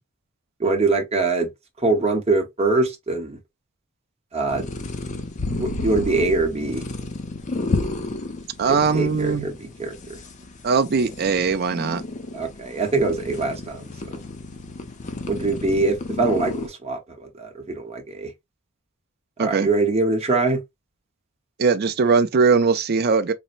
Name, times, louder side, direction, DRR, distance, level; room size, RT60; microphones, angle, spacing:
voice 1, 0.6-1.5 1.8-3.4 4.3-4.7 5.6-6.8 8.6-10.2 12.3-13.9 15.3-18.3 19.4-20.6, right 3 dB, 30° right, 0.8 m, -23 dB
sound 1, 4.5-16.7, left 2 dB, 35° left, 0.5 m, -31 dB
voice 2, 8.6-9.5 10.6-12.0 19.4-19.7 21.6-23.3, right 5 dB, 45° right, 0.4 m, -20 dB
4.2 x 2.0 x 2.5 m
head